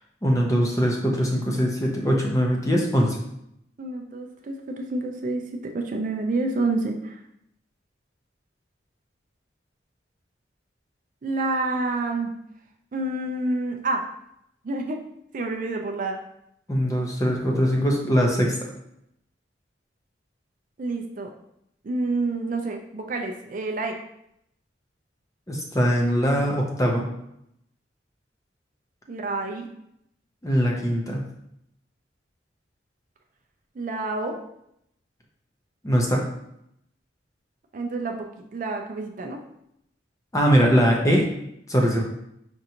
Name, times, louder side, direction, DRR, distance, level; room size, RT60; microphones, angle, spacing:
voice 1, 0.2-3.2 16.7-18.7 25.5-27.1 30.4-31.2 35.8-36.2 40.3-41.3 41.7-42.0, equal, 20° left, 0 dB, 0.6 m, -21 dB
voice 2, 3.8-7.2 11.2-12.3 12.9-14.1 14.6-15.0 15.3-16.2 20.8-21.3 21.8-24.0 29.1-29.7 33.8-34.4 37.7-39.4, right 2 dB, 45° right, 3 dB, 0.4 m, -28 dB
5.3 x 2.5 x 2.8 m, 0.77 s
head